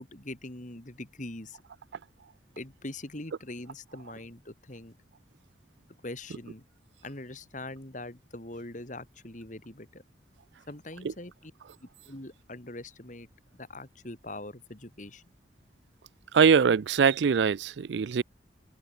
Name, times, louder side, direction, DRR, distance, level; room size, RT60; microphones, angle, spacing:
voice 1, 0.0-1.6 2.6-5.0 6.0-6.6 7.0-10.0 10.7-11.5 11.8-13.3 13.5-15.2, left 2 dB, 40° left, 2.6 m, -42 dB
voice 2, 16.3-18.2, right 6 dB, 70° right, 0.4 m, -22 dB
open air
head